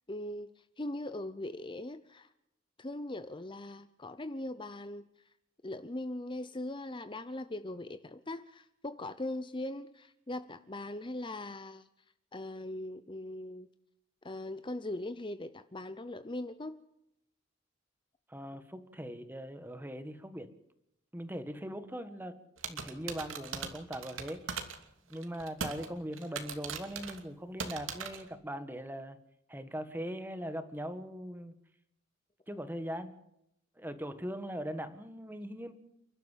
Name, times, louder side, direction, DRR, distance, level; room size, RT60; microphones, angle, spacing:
voice 1, 0.1-2.3 2.8-5.0 5.6-11.9 12.3-13.7 14.2-16.8, left 1 dB, 25° left, 11 dB, 0.8 m, -40 dB
voice 2, 18.3-20.5 21.1-22.4 22.7-24.4 25.1-29.2 29.5-31.5 32.5-33.1 33.8-35.7, equal, 10° right, 10 dB, 1.7 m, -40 dB
sound 1, 22.6-24.8 25.1-25.9 26.1-27.2 27.6-28.2, right 6 dB, 85° right, 2.8 m, -39 dB
30.0 x 12.0 x 7.5 m, 0.80 s
head